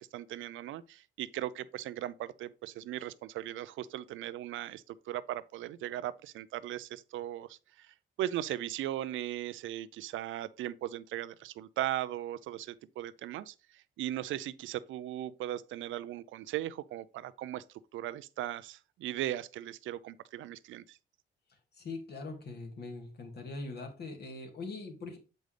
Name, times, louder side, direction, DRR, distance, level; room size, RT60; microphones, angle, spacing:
voice 1, 0.0-17.6 17.9-21.0, right 13 dB, 80° right, 0.5 m, -38 dB
voice 2, 21.8-25.2, left 3 dB, 55° left, 2.2 m, -42 dB
7.8 x 5.2 x 3.3 m
cardioid pair, 90°, 20 cm